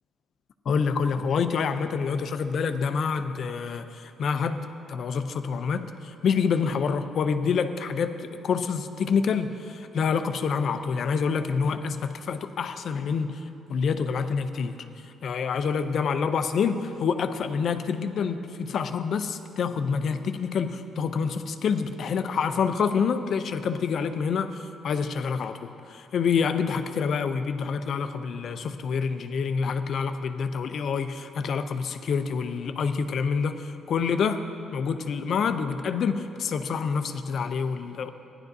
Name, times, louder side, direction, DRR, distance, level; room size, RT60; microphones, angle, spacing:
voice 1, 0.7-4.6 4.9-13.4 13.7-14.8 15.2-34.4 34.7-38.1, left 6 dB, 45° left, 9 dB, 0.4 m, -27 dB
15.5 x 10.5 x 2.6 m, 2.7 s
cardioid pair, 180°, 0 cm